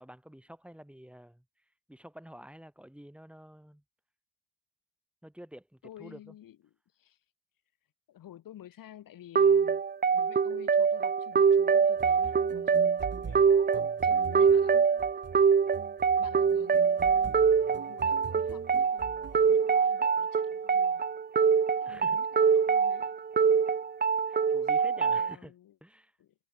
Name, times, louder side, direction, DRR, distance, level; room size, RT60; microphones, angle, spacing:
voice 1, 0.0-1.4 1.9-3.8 5.2-6.3 21.8-22.2 24.3-25.5 25.8-26.1, equal, 5° right, 7.9 m, -49 dB
voice 2, 5.8-7.2 8.1-9.8 10.1-14.7 16.2-16.9 17.9-21.1 21.8-23.2 24.8-25.8 26.2-26.3, left 12 dB, 90° left, 3.1 m, -51 dB
sound 1, 9.4-25.3, right 6 dB, 30° right, 0.7 m, -24 dB
sound 2, 12.0-19.6, right 6 dB, 50° right, 2.8 m, -44 dB
cardioid pair, 95°, 33 cm